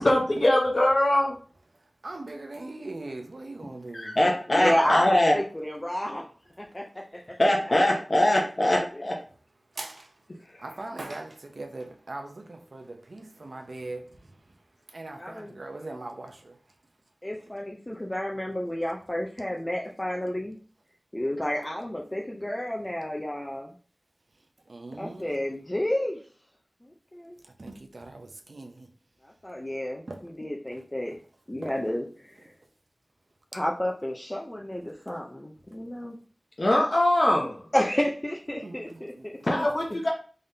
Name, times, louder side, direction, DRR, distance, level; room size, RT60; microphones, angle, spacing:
voice 1, 0.0-1.4 3.9-5.3 7.4-9.2 10.5-10.6 36.6-37.6 39.4-40.1, left 1 dB, 50° left, 0.8 m, -22 dB
voice 2, 1.7-4.2 9.7-10.2 10.6-14.6 14.9-16.6 17.4-17.5 24.6-25.4 27.4-28.9 30.1-30.2 31.1-31.2 31.6-31.8 38.6-39.3, right 2 dB, 70° right, 0.7 m, -41 dB
voice 3, 4.5-6.2 6.6-7.0 7.7-8.0 15.2-15.5 17.2-20.6 21.1-23.7 25.0-26.2 26.8-27.4 29.2-30.0 30.4-31.1 31.5-32.5 33.5-36.2 37.7-39.4, left 1 dB, 20° left, 0.5 m, -30 dB
3.8 x 3.5 x 2.7 m
wide cardioid pair, 65°, 0 cm